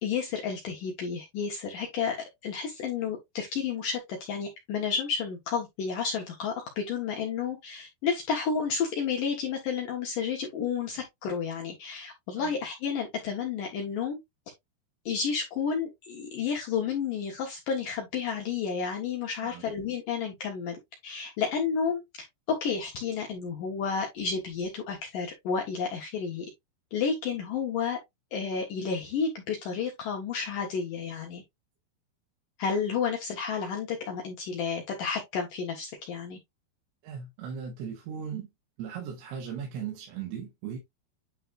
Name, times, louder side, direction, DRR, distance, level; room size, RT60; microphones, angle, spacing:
voice 1, 0.0-4.0 4.3-14.2 15.1-20.8 21.0-22.0 22.5-26.5 26.9-28.0 28.3-31.4 32.6-36.4, left 6 dB, 65° left, 2.5 m, -31 dB
voice 2, 37.0-38.5 38.8-40.8, right 7 dB, 85° right, 3.5 m, -37 dB
9.2 x 4.0 x 2.5 m
omnidirectional pair, 4.8 m